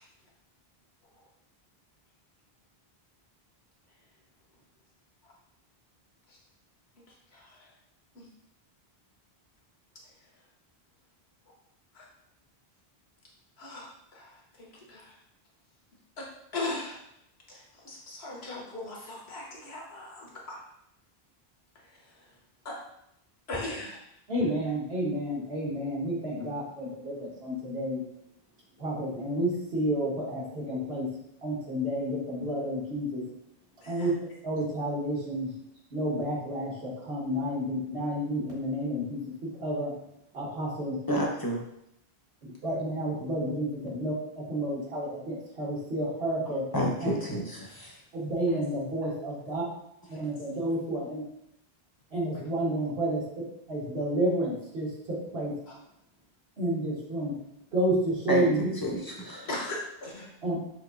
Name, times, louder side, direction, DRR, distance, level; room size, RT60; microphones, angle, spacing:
voice 1, 13.6-14.3 14.6-15.1 16.2-16.3 16.5-17.0 17.5-20.6 22.6-22.8 23.5-24.0 33.8-34.1 50.1-50.2 59.5-60.3, left 2 dB, 80° left, -2 dB, 1.3 m, -38 dB
voice 2, 24.3-28.0 28.8-31.1 31.4-33.2 33.9-34.1 34.4-35.5 35.9-39.2 39.6-39.9 40.3-41.0 42.4-44.1 44.5-46.6 47.0-47.1 48.1-49.6 50.1-51.2 52.1-53.2 53.7-55.5 56.6-57.3 57.7-58.7 60.4-60.6, right 1 dB, 70° right, -6 dB, 1.7 m, -30 dB
voice 3, 41.1-41.6 46.7-47.9 58.3-59.5, equal, 25° left, -2 dB, 0.6 m, -30 dB
5.6 x 2.7 x 2.5 m, 0.77 s
omnidirectional pair, 1.0 m